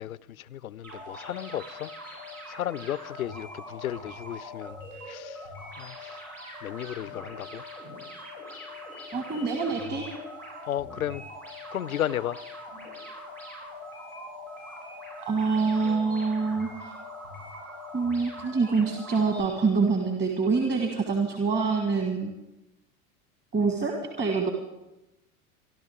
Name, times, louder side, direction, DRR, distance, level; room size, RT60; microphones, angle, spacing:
voice 1, 0.0-1.9 2.5-4.8 5.0-5.4 5.8-6.2 6.6-7.6 8.5-8.8 10.6-11.2 11.7-12.4, left 11 dB, 80° left, 0.5 m, -34 dB
sound 1, 0.8-19.4, left 1 dB, 80° right, 7.2 m, -42 dB
voice 2, 9.1-10.1 15.2-16.9 17.9-22.3 23.5-24.5, right 4 dB, 25° right, 1.8 m, -26 dB
26.0 x 12.0 x 3.6 m
figure-of-eight pair, 75°, 43 cm